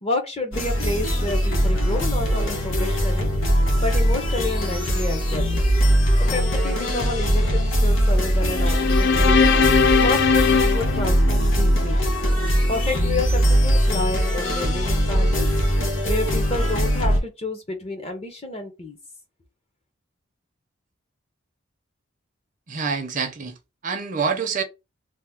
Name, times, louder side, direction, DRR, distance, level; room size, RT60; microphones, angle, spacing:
voice 1, 0.0-3.3 3.8-5.5 6.2-9.4 10.0-12.0 12.7-15.5 16.0-19.0, left 2 dB, 30° left, 0.8 m, -30 dB
sound 1, 0.5-17.2, equal, 90° left, 1.0 m, -21 dB
sound 2, 8.5-11.9, left 5 dB, 55° left, 0.3 m, -20 dB
voice 2, 22.7-23.6 23.8-24.6, right 5 dB, 40° right, 0.6 m, -26 dB
2.9 x 2.0 x 3.5 m
head